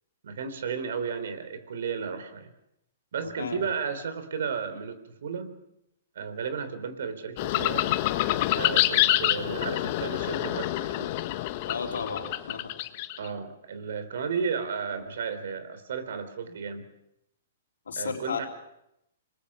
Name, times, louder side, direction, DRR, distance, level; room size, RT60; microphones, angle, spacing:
voice 1, 0.2-2.5 3.1-5.6 6.2-7.9 8.6-11.1 13.2-16.8 18.0-18.5, right 6 dB, 70° right, 11 dB, 3.7 m, -33 dB
voice 2, 3.2-3.6 11.7-12.7 17.9-18.5, left 5 dB, 85° left, 3 dB, 3.6 m, -34 dB
sound 1, 7.4-13.3, left 15 dB, 45° left, 1.2 m, -27 dB
27.0 x 21.0 x 6.1 m, 0.81 s
hypercardioid pair, 135°, 0 cm